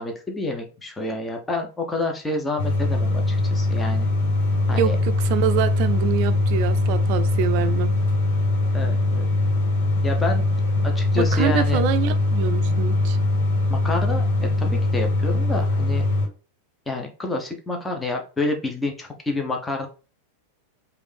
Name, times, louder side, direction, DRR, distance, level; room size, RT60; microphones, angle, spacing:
voice 1, 0.0-4.1 4.7-5.0 8.7-9.3 10.0-10.4 10.8-11.8 13.7-16.0 16.9-19.9, left 2 dB, 10° left, 1.0 m, -28 dB
sound 1, 2.6-16.3, left 2 dB, 60° left, 1.9 m, -21 dB
voice 2, 4.7-7.9 11.1-13.2, right 9 dB, 45° right, 0.5 m, -25 dB
5.0 x 2.7 x 3.4 m
figure-of-eight pair, 90°, 0 cm